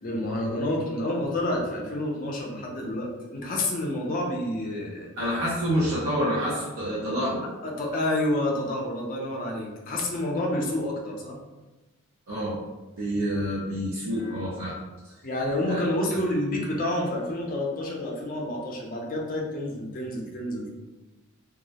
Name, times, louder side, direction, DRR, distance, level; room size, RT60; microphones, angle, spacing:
voice 1, 0.0-5.1 7.6-11.4 15.2-20.7, left 1 dB, 40° left, -1 dB, 0.4 m, -29 dB
voice 2, 5.2-7.4 12.3-12.6 13.0-14.8 15.0-15.1 15.7-15.8, equal, 65° right, -7 dB, 0.5 m, -27 dB
2.2 x 2.0 x 2.7 m, 1.1 s
head